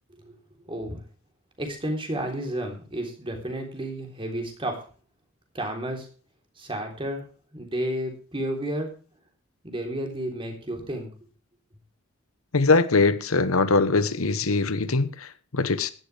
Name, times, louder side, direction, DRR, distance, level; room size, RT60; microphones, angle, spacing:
voice 1, 0.7-1.0 1.6-4.9 5.5-6.1 6.6-8.9 9.6-11.1, right 1 dB, 25° right, 3.6 m, -32 dB
voice 2, 12.5-15.9, left 3 dB, 80° left, 1.1 m, -22 dB
15.5 x 12.0 x 3.4 m
head